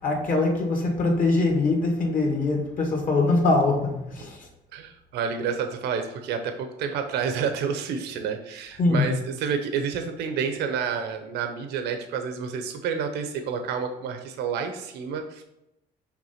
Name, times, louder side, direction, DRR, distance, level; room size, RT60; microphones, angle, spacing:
voice 1, 0.0-4.5 8.8-9.1, left 3 dB, 50° left, 1 dB, 1.9 m, -23 dB
voice 2, 4.7-15.4, right 6 dB, 80° right, 6 dB, 0.8 m, -29 dB
6.0 x 3.4 x 5.7 m, 0.87 s
cardioid pair, 110°, 17 cm